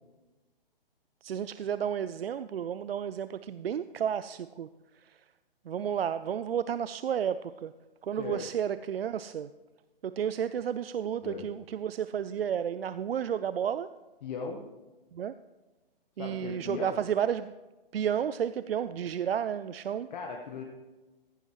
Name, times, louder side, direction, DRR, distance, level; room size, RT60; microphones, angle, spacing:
voice 1, 1.2-4.7 4.9-5.2 5.7-7.7 8.0-9.5 10.0-13.9 15.1-15.3 16.2-17.5 17.9-20.1, right 8 dB, 80° right, 14 dB, 0.5 m, -32 dB
voice 2, 8.2-8.5 11.2-11.5 14.2-14.6 16.2-17.0 20.1-20.6, left 5 dB, 50° left, 2 dB, 1.3 m, -38 dB
15.0 x 11.0 x 3.1 m, 1.2 s
figure-of-eight pair, 130°, 29 cm